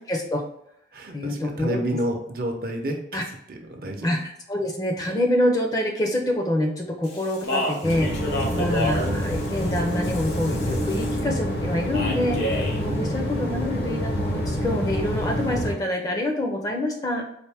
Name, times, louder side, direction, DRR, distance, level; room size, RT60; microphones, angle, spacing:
voice 1, 0.1-0.4 1.1-1.8 3.1-3.2 4.0-8.1 8.5-12.5 12.7-17.2, left 1 dB, 20° left, 1 dB, 0.5 m, -26 dB
voice 2, 0.9-4.1 12.9-13.3, right 1 dB, 55° right, 3 dB, 0.7 m, -30 dB
Speech, 7.0-11.2 11.9-12.8, left 1 dB, 85° left, 1.1 m, -30 dB
sound 1, 7.8-15.7, equal, 60° left, 0.9 m, -27 dB
4.3 x 2.6 x 3.4 m, 0.74 s
head